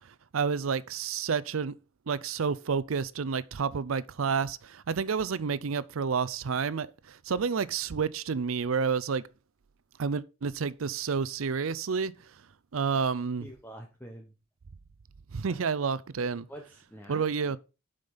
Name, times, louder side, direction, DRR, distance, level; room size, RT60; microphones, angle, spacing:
voice 1, 0.3-1.8 2.1-9.3 10.0-12.1 12.7-13.5 15.3-16.5 17.1-17.6, right 5 dB, 70° right, 0.5 m, -30 dB
voice 2, 13.4-14.3 15.5-15.7 16.5-17.6, equal, 10° left, 1.0 m, -47 dB
7.8 x 5.2 x 5.4 m
head